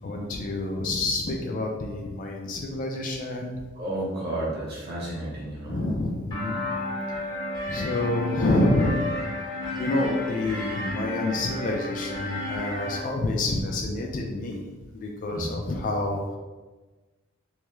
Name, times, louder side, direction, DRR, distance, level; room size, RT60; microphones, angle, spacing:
voice 1, 0.0-3.6 5.6-6.8 7.7-9.0 9.8-16.4, left 2 dB, 40° left, 1 dB, 0.4 m, -28 dB
voice 2, 3.7-5.8 15.3-15.5, right 1 dB, 50° right, -6 dB, 1.0 m, -32 dB
sound 1, 6.3-13.0, left 2 dB, 20° left, 1.0 m, -32 dB
3.4 x 3.1 x 3.0 m, 1.3 s
head